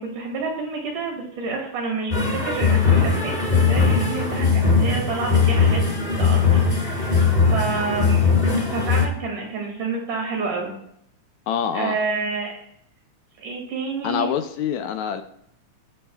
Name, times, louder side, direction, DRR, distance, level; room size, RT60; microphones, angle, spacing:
voice 1, 0.0-5.8 6.2-8.2 8.6-10.7 11.7-12.5 13.4-14.3, right 4 dB, 80° right, 0 dB, 3.8 m, -29 dB
sound 1, 2.1-9.1, left 5 dB, 30° left, 1.2 m, -19 dB
voice 2, 11.5-12.0 14.0-15.2, left 8 dB, 75° left, 8 dB, 1.9 m, -25 dB
19.5 x 7.4 x 2.4 m, 0.71 s
omnidirectional pair, 3.5 m